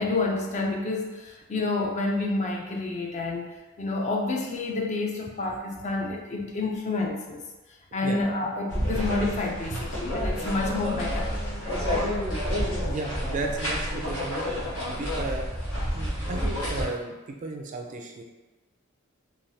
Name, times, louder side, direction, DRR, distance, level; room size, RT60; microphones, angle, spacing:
voice 1, 0.0-7.4 7.9-11.4, left 2 dB, 35° left, 1 dB, 0.4 m, -29 dB
sound 1, 8.7-16.9, equal, 80° left, 1.1 m, -29 dB
voice 2, 12.7-14.4 14.9-15.4 15.9-18.2, right 3 dB, 35° right, 2 dB, 0.3 m, -34 dB
3.2 x 2.3 x 2.7 m, 1.1 s
head